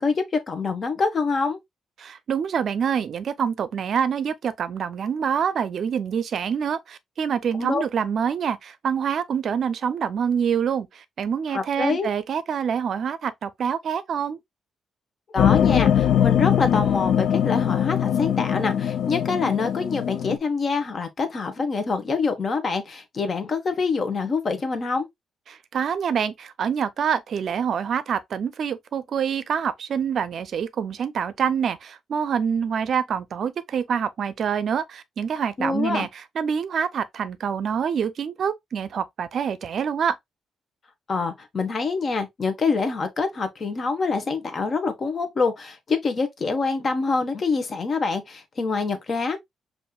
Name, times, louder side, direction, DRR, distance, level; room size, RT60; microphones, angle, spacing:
voice 1, 0.0-1.6 7.6-7.8 11.5-12.1 15.3-25.1 35.6-36.1 41.1-49.4, left 4 dB, 45° left, 0.9 m, -25 dB
voice 2, 2.0-14.4 25.5-40.2, right 7 dB, 60° right, 0.5 m, -26 dB
sound 1, 15.4-20.4, left 9 dB, 75° left, 0.3 m, -21 dB
5.3 x 2.6 x 2.3 m
cardioid pair, 100°, 0 cm